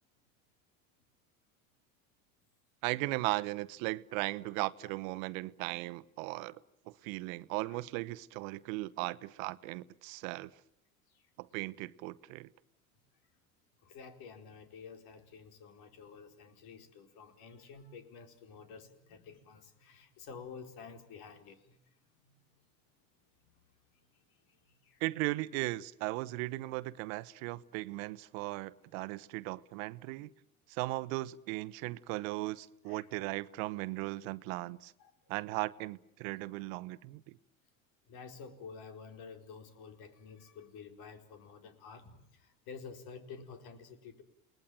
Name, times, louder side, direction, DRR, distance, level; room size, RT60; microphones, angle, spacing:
voice 1, 2.8-6.6 6.9-10.5 11.4-12.5 25.0-30.3 30.7-34.9 35.3-37.4, right 20 dB, 65° right, 1.1 m, -37 dB
voice 2, 13.8-21.8 22.2-22.3 24.4-25.0 32.9-33.1 35.0-35.1 38.1-44.2, left 5 dB, 60° left, 4.5 m, -50 dB
29.0 x 20.0 x 9.1 m
hypercardioid pair, 85°, 42 cm